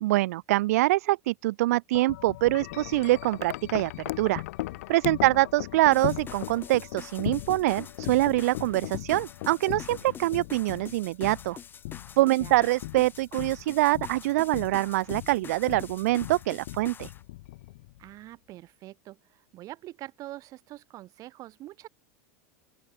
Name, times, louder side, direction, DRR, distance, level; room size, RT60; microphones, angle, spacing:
voice 1, 0.0-3.9 4.2-4.4 4.9-11.6 12.2-17.1, right 18 dB, 80° right, 0.4 m, -25 dB
Wind chime, 1.9-18.1, left 18 dB, 75° left, 0.8 m, -38 dB
voice 2, 5.1-5.5 12.2-12.7 18.0-21.9, right 16 dB, 45° right, 4.8 m, -45 dB
sound 1, 5.9-17.2, left 7 dB, 25° left, 6.9 m, -46 dB
open air
supercardioid pair, 115°, 8 cm